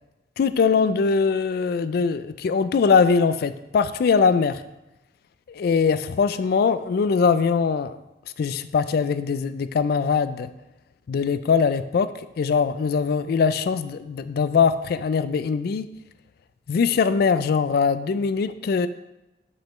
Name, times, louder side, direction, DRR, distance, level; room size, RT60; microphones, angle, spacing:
voice 1, 0.4-4.6 5.6-8.0 8.4-10.5 11.1-12.1 12.4-15.9 16.7-18.9, left 5 dB, 55° left, 12 dB, 0.3 m, -21 dB
7.2 x 5.4 x 3.0 m, 0.96 s
head